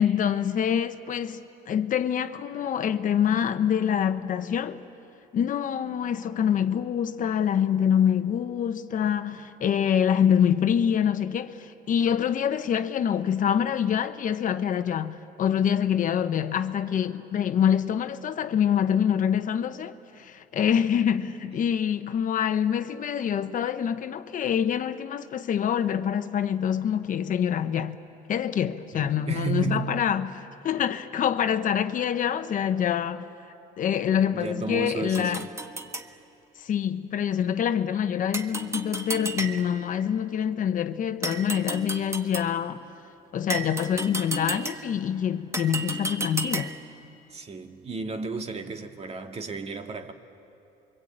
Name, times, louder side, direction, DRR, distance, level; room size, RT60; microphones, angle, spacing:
voice 1, 0.0-4.8 5.3-28.0 28.3-33.3 33.8-35.4 36.6-42.9 43.3-46.7, left 8 dB, 50° left, 1.1 m, -25 dB
voice 2, 28.9-30.0 34.3-35.5 47.3-50.1, right 4 dB, 40° right, 2.1 m, -33 dB
sound 1, 35.1-36.1 38.3-39.9 41.2-42.6 43.5-45.0 45.5-46.9, right 2 dB, 15° right, 1.5 m, -33 dB
28.0 x 24.0 x 8.9 m
cardioid pair, 110°, 17 cm